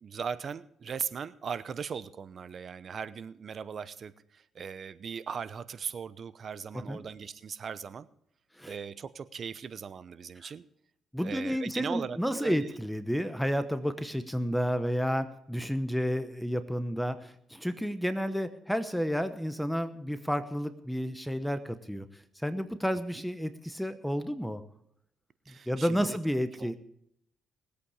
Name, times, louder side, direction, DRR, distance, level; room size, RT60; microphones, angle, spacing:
voice 1, 0.0-8.1 8.7-10.7 11.2-12.7 23.1-23.2 25.5-26.2 26.6-26.8, right 6 dB, 50° right, 15 dB, 0.8 m, -39 dB
voice 2, 11.1-24.6 25.5-26.8, equal, ahead, 11 dB, 1.0 m, -31 dB
19.5 x 8.5 x 4.9 m, 0.73 s
cardioid pair, 90°, 0 cm